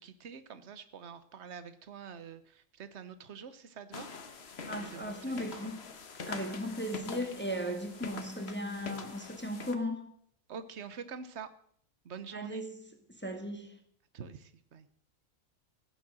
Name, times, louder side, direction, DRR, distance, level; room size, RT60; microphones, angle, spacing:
voice 1, 0.0-4.1 4.7-5.7 7.7-7.8 10.5-11.5 12.0-12.6 14.1-14.9, right 6 dB, 60° right, 1.2 m, -46 dB
sound 1, 3.9-9.7, left 5 dB, 55° left, 1.3 m, -44 dB
voice 2, 4.6-5.9 6.2-10.1 12.3-12.8 13.1-13.8, equal, 10° left, 1.4 m, -37 dB
15.5 x 8.8 x 6.3 m
omnidirectional pair, 1.4 m